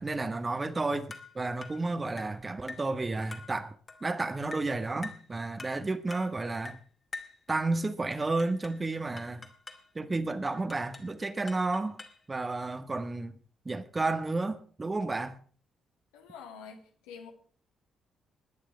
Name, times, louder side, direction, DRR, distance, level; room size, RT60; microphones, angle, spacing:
voice 1, 0.0-3.7 4.0-6.8 7.5-9.4 9.9-12.0 12.3-13.3 13.6-15.4, right 3 dB, 25° right, 1.6 m, -32 dB
sound 1, 1.1-1.3 1.6-1.8 2.2-2.4 2.7-2.9 3.3-3.5 3.9-4.1 4.5-4.7 5.0-5.3 5.6-5.8 6.1-6.3 6.6-6.8 7.1-7.4 8.1-8.8 9.2-9.9 10.5-11.1 11.5-12.2, left 3 dB, 30° left, 2.4 m, -45 dB
voice 2, 16.1-17.3, left 6 dB, 70° left, 2.3 m, -47 dB
19.5 x 10.0 x 4.9 m
figure-of-eight pair, 40°, 0 cm